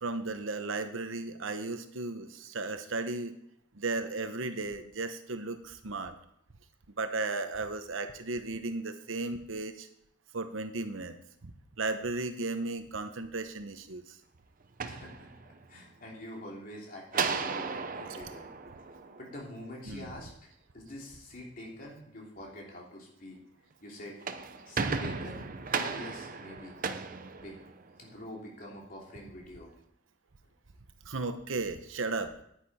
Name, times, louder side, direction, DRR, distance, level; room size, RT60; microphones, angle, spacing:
voice 1, 0.0-3.4 3.7-6.1 7.0-9.9 10.3-11.1 11.4-14.2 18.1-18.2 19.9-20.2 31.0-32.3, right 3 dB, 90° right, 9 dB, 1.0 m, -35 dB
sound 1, 14.6-15.8 17.1-19.6 24.0-28.1, right 5 dB, 45° right, 0.7 m, -35 dB
voice 2, 14.8-18.5 19.2-23.4 23.8-24.1 24.7-26.7 27.3-27.6 28.0-29.7, left 1 dB, 45° left, -2 dB, 3.1 m, -45 dB
10.0 x 10.0 x 4.2 m, 0.72 s
head